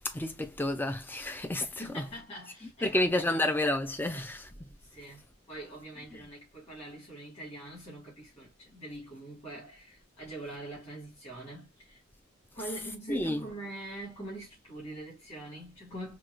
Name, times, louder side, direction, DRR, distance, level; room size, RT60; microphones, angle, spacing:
voice 1, 0.0-1.8 2.8-4.5 13.1-13.4, left 1 dB, 10° left, 0.5 m, -30 dB
voice 2, 1.8-3.4 4.1-4.3 4.8-12.0 12.5-16.2, right 1 dB, 30° left, 2.0 m, -44 dB
4.5 x 2.3 x 2.4 m
head